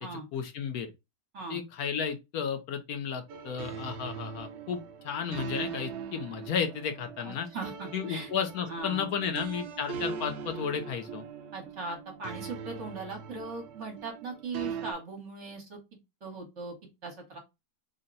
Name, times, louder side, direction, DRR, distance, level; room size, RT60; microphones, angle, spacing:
voice 1, 0.1-0.9 1.5-7.5 7.9-11.2, left 7 dB, 70° left, 1.1 m, -33 dB
sound 1, 3.3-14.9, right 7 dB, 80° right, 0.6 m, -41 dB
voice 2, 7.2-8.3 8.6-9.1 11.5-15.8 16.2-16.7 17.0-17.4, right 3 dB, 50° right, 1.4 m, -39 dB
3.7 x 2.1 x 3.9 m
omnidirectional pair, 1.7 m